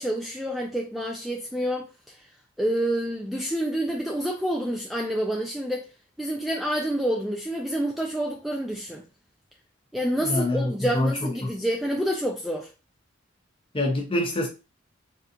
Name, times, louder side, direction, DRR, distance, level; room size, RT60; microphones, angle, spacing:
voice 1, 0.0-2.1 2.6-5.8 6.2-9.0 9.9-12.7, equal, ahead, 0.3 m, -28 dB
voice 2, 10.2-11.5 13.7-14.5, left 1 dB, 25° left, 0.8 m, -26 dB
3.6 x 2.4 x 2.7 m
head